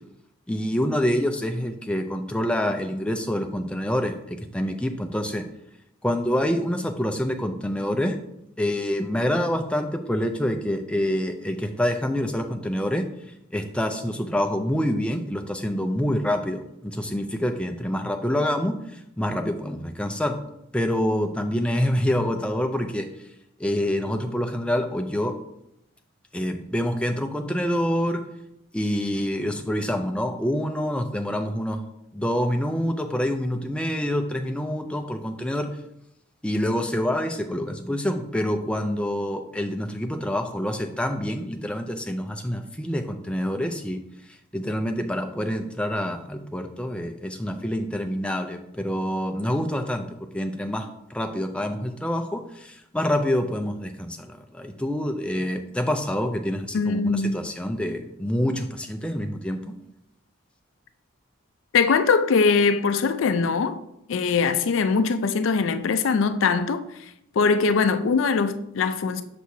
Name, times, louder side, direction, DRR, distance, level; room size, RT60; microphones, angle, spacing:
voice 1, 0.5-5.4 6.0-8.2 8.6-13.0 13.5-18.8 19.2-20.4 20.7-23.1 23.6-25.4 26.3-28.2 28.7-31.8 32.1-35.7 36.4-44.0 44.5-59.8, equal, 5° left, 0.4 m, -26 dB
voice 2, 56.7-57.4 61.7-63.8 64.1-67.1 67.4-69.2, left 5 dB, 65° left, 0.4 m, -22 dB
6.1 x 6.0 x 2.7 m
head